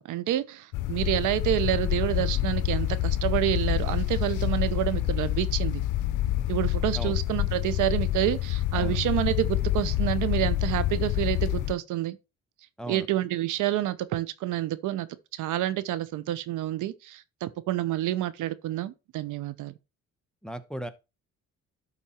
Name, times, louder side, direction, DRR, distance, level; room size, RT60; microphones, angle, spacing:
voice 1, 0.0-5.8 6.5-12.2 12.9-15.1 15.3-19.7, right 14 dB, 85° right, 0.8 m, -28 dB
sound 1, 0.7-11.7, left 14 dB, 85° left, 0.6 m, -27 dB
voice 2, 20.4-20.9, right 1 dB, ahead, 1.0 m, -36 dB
11.5 x 4.2 x 4.3 m
cardioid pair, 90°, 30 cm